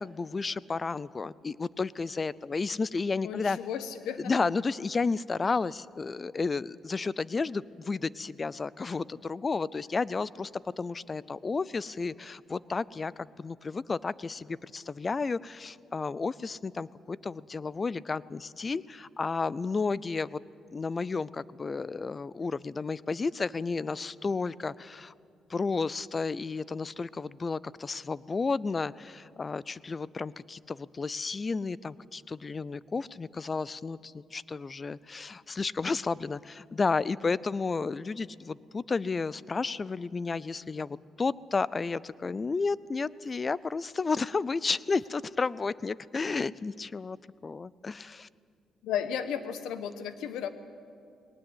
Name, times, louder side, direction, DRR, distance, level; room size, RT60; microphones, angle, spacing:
voice 1, 0.0-3.6 4.2-10.5 10.8-20.4 20.7-25.1 25.5-47.2 47.4-48.3, left 4 dB, 30° left, 20 dB, 0.5 m, -32 dB
voice 2, 3.2-4.3 48.8-50.5, left 8 dB, 85° left, 11 dB, 1.2 m, -34 dB
20.5 x 19.0 x 8.0 m, 2.3 s
cardioid pair, 90°, 0 cm